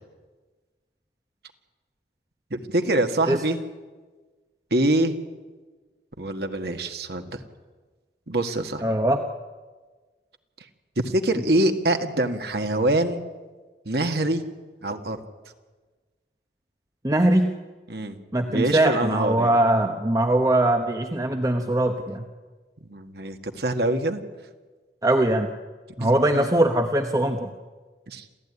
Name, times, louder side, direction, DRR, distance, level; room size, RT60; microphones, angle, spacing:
voice 1, 2.5-3.6 4.7-5.1 6.2-7.4 8.3-8.8 11.0-13.2 13.9-14.4 14.8-15.2 17.9-18.2 18.5-19.5 22.9-24.2 26.0-26.5 28.1-28.2, right 1 dB, 65° right, 6 dB, 1.9 m, -24 dB
voice 2, 8.8-9.2 17.0-17.5 18.3-22.2 25.0-25.5 26.0-27.5, right 1 dB, 20° right, 5 dB, 1.0 m, -21 dB
27.5 x 15.0 x 9.9 m, 1.3 s
head